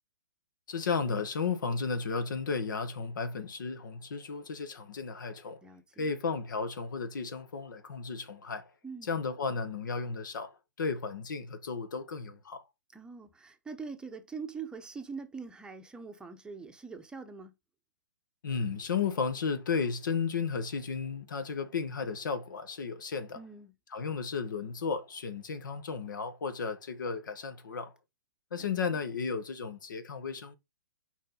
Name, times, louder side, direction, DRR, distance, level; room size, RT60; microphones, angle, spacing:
voice 1, 0.7-5.6 6.0-8.7 9.0-12.6 18.4-23.4 23.9-27.9 28.5-30.6, left 5 dB, 70° left, 1.4 m, -34 dB
voice 2, 5.6-6.1 8.8-9.1 12.9-17.5 23.3-23.7 28.6-28.7, right 5 dB, 10° right, 0.8 m, -43 dB
6.5 x 4.8 x 3.9 m
hypercardioid pair, 130°, 11 cm